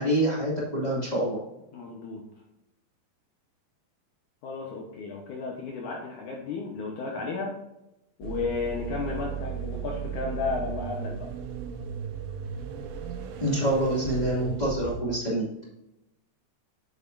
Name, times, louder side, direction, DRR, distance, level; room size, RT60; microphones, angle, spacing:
voice 1, 0.0-1.4 13.4-15.4, right 1 dB, 20° left, -6 dB, 1.2 m, -26 dB
voice 2, 1.7-2.3 4.4-7.6 8.2-11.3, left 4 dB, 90° left, -1 dB, 1.7 m, -33 dB
sound 1, 8.2-15.0, right 7 dB, 85° right, 3.3 m, -36 dB
9.5 x 8.3 x 2.7 m, 0.88 s
omnidirectional pair, 5.2 m